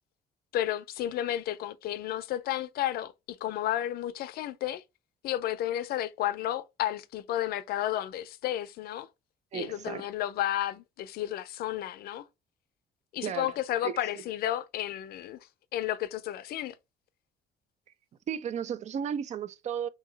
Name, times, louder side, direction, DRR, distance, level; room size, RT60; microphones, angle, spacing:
voice 1, 0.5-4.8 5.2-9.1 9.5-12.2 13.1-15.5 15.7-16.8, left 12 dB, 65° left, 0.5 m, -32 dB
voice 2, 9.5-10.1 13.2-13.5 13.8-13.9 18.3-19.9, right 8 dB, 45° right, 0.4 m, -34 dB
2.9 x 2.7 x 3.8 m
cardioid pair, 110°, 17 cm